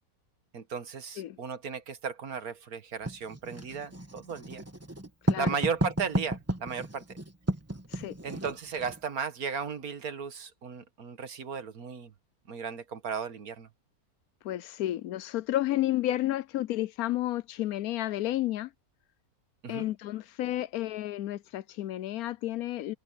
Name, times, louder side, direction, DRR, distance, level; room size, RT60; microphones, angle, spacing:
voice 1, 0.5-4.6 5.4-7.0 8.2-12.1 12.5-13.7 19.6-19.9, right 6 dB, 75° right, 1.9 m, -35 dB
Writing, 3.1-9.0, right 1 dB, 10° right, 1.5 m, -33 dB
voice 2, 14.4-18.7 19.7-22.9, left 14 dB, 75° left, 1.1 m, -31 dB
omnidirectional pair, 1.6 m